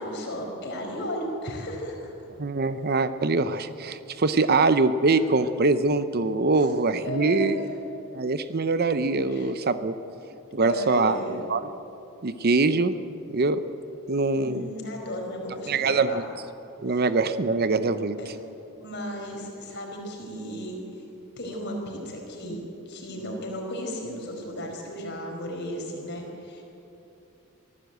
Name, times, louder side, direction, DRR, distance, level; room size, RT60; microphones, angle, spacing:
voice 1, 0.0-2.1 6.6-6.7 7.0-7.6 9.3-9.6 10.6-11.4 14.3-16.2 16.9-17.0 18.2-18.3 18.8-21.0 21.4-26.6, equal, 50° left, 1 dB, 4.7 m, -35 dB
voice 2, 2.4-7.6 8.1-10.0 10.5-11.6 12.2-13.0 13.3-13.8 14.1-14.7 15.7-16.2 16.8-18.2, right 3 dB, 45° right, 12 dB, 0.7 m, -23 dB
23.5 x 15.0 x 8.1 m, 2.8 s
head